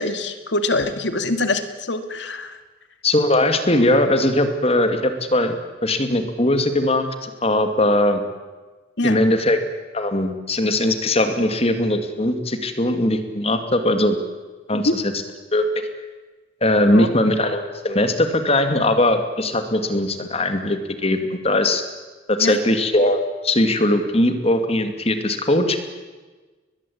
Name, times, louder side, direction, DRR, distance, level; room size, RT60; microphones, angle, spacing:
voice 1, 0.0-2.6 9.0-9.2 14.7-14.9 16.9-17.1 22.4-22.6, left 2 dB, 70° left, 9 dB, 2.2 m, -24 dB
voice 2, 3.0-5.6 5.8-8.2 9.0-9.6 9.9-14.2 14.7-15.1 15.5-15.6 16.6-21.8 22.3-23.2 23.4-25.8, left 1 dB, 30° left, 8 dB, 2.4 m, -20 dB
23.0 x 20.5 x 8.7 m, 1.3 s
head